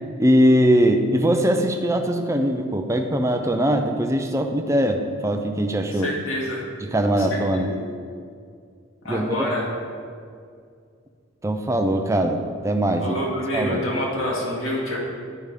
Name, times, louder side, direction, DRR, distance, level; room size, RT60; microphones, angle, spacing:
voice 1, 0.2-6.1 6.8-7.7 9.1-9.5 11.4-13.2 13.5-13.8, equal, 15° right, 5 dB, 0.5 m, -21 dB
voice 2, 6.0-6.6 7.2-7.8 9.0-9.7 13.0-15.0, equal, 80° left, -4 dB, 2.3 m, -27 dB
11.0 x 5.2 x 4.9 m, 2.2 s
head